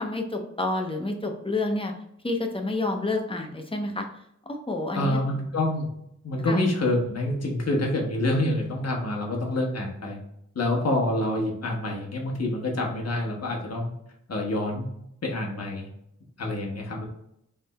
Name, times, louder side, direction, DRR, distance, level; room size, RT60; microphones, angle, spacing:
voice 1, 0.0-1.9 2.2-4.1 4.5-5.2 6.5-6.6, left 2 dB, 20° left, 3 dB, 0.7 m, -29 dB
voice 2, 4.9-5.9 6.2-10.2 10.5-13.9 14.3-14.9 15.2-15.9 16.4-17.0, left 1 dB, 55° left, 0 dB, 1.2 m, -27 dB
3.5 x 3.3 x 4.3 m, 0.77 s
wide cardioid pair, 85°, 30 cm